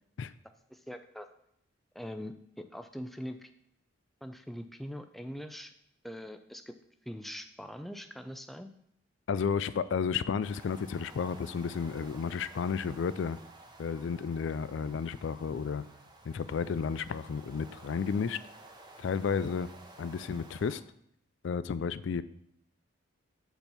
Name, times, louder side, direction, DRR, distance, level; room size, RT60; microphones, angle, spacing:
voice 1, 0.7-1.3 1.9-3.5 4.2-5.7 6.0-6.8 7.1-8.7, equal, ahead, 7 dB, 0.4 m, -42 dB
voice 2, 9.3-13.4 13.8-15.8 16.2-18.4 19.0-19.7 20.0-20.8 21.4-22.2, left 6 dB, 60° left, 15 dB, 0.3 m, -32 dB
sound 1, 10.4-20.9, right 2 dB, 20° right, 1.0 m, -53 dB
8.1 x 4.4 x 6.9 m, 0.72 s
head